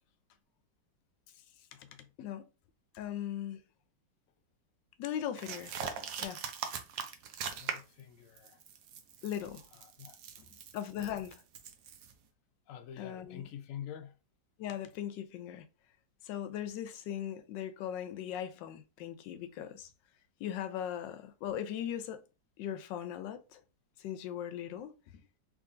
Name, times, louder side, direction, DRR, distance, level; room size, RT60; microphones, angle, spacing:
voice 1, 2.9-3.6 5.0-5.7 6.2-6.4 9.2-9.7 10.7-11.4 13.0-13.5 14.6-15.7 16.2-19.9 20.4-22.3 22.6-23.6 24.0-25.3, left 10 dB, 85° left, 1.2 m, -39 dB
sound 1, 5.4-8.0 8.4-12.1, right 7 dB, 65° right, 0.9 m, -41 dB
voice 2, 7.5-8.6 9.7-10.5 12.7-14.1, left 9 dB, 65° left, 0.8 m, -47 dB
3.6 x 3.2 x 2.5 m
omnidirectional pair, 1.9 m